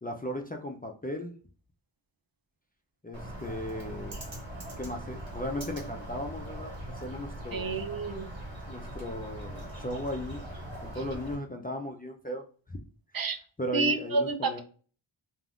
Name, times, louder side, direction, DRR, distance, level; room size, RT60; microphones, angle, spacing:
voice 1, 0.0-1.3 3.0-4.2 4.8-7.8 8.7-10.4 10.8-12.8 13.6-14.6, left 1 dB, 20° left, 1 dB, 0.4 m, -37 dB
Bird, 3.1-11.4, right 1 dB, 65° right, 1.5 m, -41 dB
voice 2, 7.5-8.3 13.1-13.4 13.7-14.6, right 4 dB, 45° right, 7 dB, 0.5 m, -29 dB
2.5 x 2.4 x 3.4 m, 0.41 s
wide cardioid pair, 65°, 49 cm